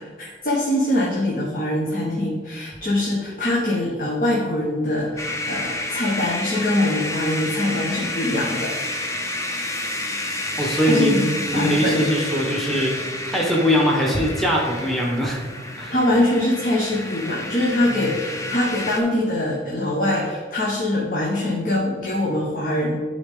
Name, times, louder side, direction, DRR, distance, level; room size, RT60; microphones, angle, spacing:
voice 1, 0.0-8.7 10.8-12.1 15.9-23.0, left 1 dB, 50° left, -5 dB, 1.2 m, -23 dB
sound 1, 5.2-19.0, left 1 dB, 15° left, 0.7 m, -30 dB
voice 2, 10.6-11.2 11.5-15.4 15.8-15.9 17.9-18.1, equal, ahead, -3 dB, 1.1 m, -21 dB
11.5 x 4.0 x 3.7 m, 1.5 s
head